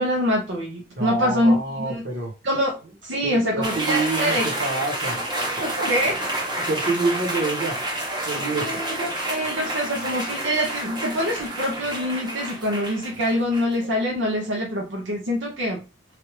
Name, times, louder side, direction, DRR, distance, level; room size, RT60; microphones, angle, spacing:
voice 1, 0.0-2.0 2.4-4.5 5.9-6.1 8.5-15.8, equal, 70° right, -1 dB, 0.7 m, -25 dB
voice 2, 0.9-2.3 3.2-5.2 5.6-6.1 6.6-7.8 8.2-8.8, right 3 dB, 55° right, 2 dB, 1.1 m, -27 dB
sound 1, 3.6-13.9, right 1 dB, 20° right, 0.9 m, -29 dB
3.3 x 2.4 x 3.1 m, 0.31 s
head